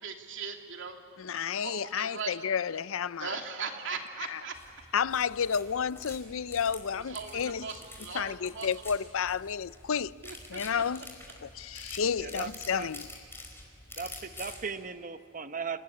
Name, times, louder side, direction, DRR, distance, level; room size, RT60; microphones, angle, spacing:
voice 1, 0.0-1.0 1.3-2.4 3.2-4.5 6.9-8.7 10.2-10.8 11.7-12.0, right 5 dB, 65° right, 2.9 m, -39 dB
voice 2, 1.2-3.4 4.3-4.4 4.9-7.7 8.1-10.1 10.5-11.0 11.4-13.1, left 7 dB, 75° left, 0.5 m, -31 dB
sound 1, 4.5-14.7, left 2 dB, 10° left, 4.9 m, -48 dB
voice 3, 12.2-12.9 14.0-15.8, right 5 dB, 40° right, 1.0 m, -37 dB
29.5 x 19.5 x 9.8 m
head